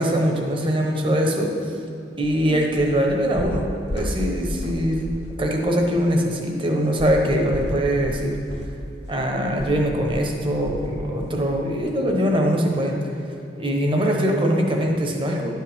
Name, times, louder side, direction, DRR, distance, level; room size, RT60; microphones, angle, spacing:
voice 1, 0.0-1.7 2.2-3.7 3.9-8.4 9.1-13.1 13.6-15.6, equal, 30° right, 1 dB, 1.0 m, -22 dB
sound 1, 2.2-2.4 2.8-3.0 3.4-4.8 5.1-5.4 5.8-5.9 7.0-11.0 11.3-11.5 11.9-12.0, left 1 dB, 65° left, 0.9 m, -32 dB
11.0 x 7.6 x 3.6 m, 2.7 s
head